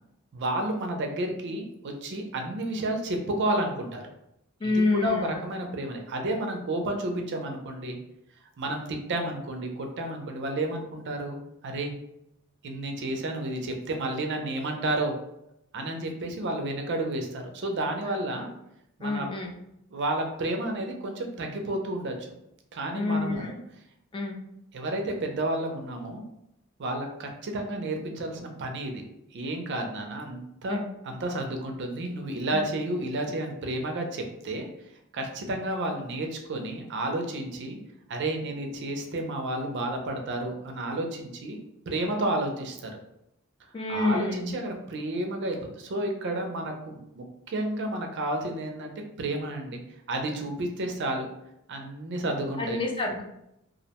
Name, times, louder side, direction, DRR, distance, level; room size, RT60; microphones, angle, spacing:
voice 1, 0.3-4.0 4.9-8.0 8.6-11.4 11.6-12.0 12.6-15.1 15.7-18.5 19.0-19.3 19.9-22.1 22.7-23.6 24.7-26.2 26.8-28.9 29.3-34.7 35.1-37.8 38.1-41.6 41.9-42.9 43.9-49.8 50.1-51.3 51.7-52.8, right 1 dB, 55° right, 3 dB, 0.4 m, -31 dB
voice 2, 4.6-5.4 18.1-18.5 19.0-19.5 22.9-23.5 24.1-24.4 30.7-30.8 32.5-32.6 43.7-44.5 52.6-53.2, left 3 dB, 25° left, 0 dB, 0.3 m, -28 dB
2.5 x 2.1 x 2.8 m, 0.81 s
head